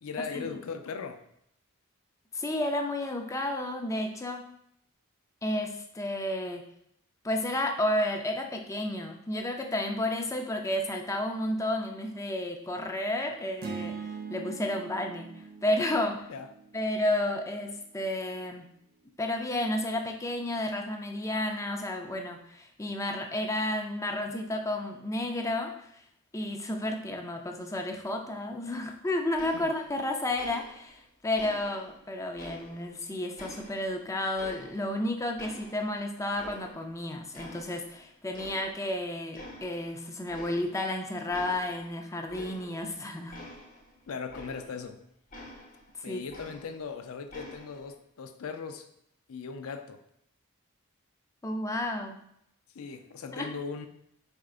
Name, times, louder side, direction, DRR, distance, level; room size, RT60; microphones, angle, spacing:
voice 1, 0.0-1.2 16.3-16.5 29.5-29.7 44.1-45.0 46.0-48.9 49.3-50.0 52.7-53.9, left 5 dB, 70° left, 7 dB, 0.5 m, -38 dB
voice 2, 2.3-4.4 5.4-6.6 7.2-14.0 14.3-15.3 15.6-16.3 16.7-18.7 19.2-26.0 26.3-43.4 46.1-46.2 51.4-52.2 53.3-53.5, left 1 dB, 15° left, 3 dB, 0.4 m, -32 dB
sound 1, 13.6-17.9, right 5 dB, 45° right, 0.4 m, -42 dB
sound 2, 29.4-30.1 30.4-31.0 31.4-33.0 33.4-35.0 35.4-37.0 37.3-38.0 38.3-39.0 39.3-39.9 40.3-40.9 41.3-44.9 45.3-46.9 47.3-47.9, left 1 dB, 35° left, 0.8 m, -48 dB
4.9 x 4.3 x 2.4 m, 0.73 s
head